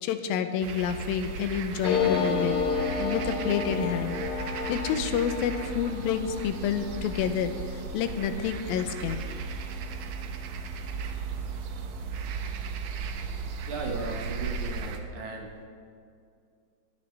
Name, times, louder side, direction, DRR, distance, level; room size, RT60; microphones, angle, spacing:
voice 1, 0.0-2.6 3.0-4.2 4.7-7.5 7.9-9.2, left 8 dB, 80° left, 9 dB, 2.4 m, -29 dB
sound 1, 0.6-15.0, right 5 dB, 85° right, 1.5 m, -36 dB
sound 2, 1.8-11.0 11.3-11.4 11.6-12.2, left 5 dB, 65° left, 2.6 m, -33 dB
voice 2, 13.7-15.5, right 3 dB, 65° right, 1 dB, 2.2 m, -36 dB
20.5 x 10.0 x 3.3 m, 2.4 s
omnidirectional pair, 4.2 m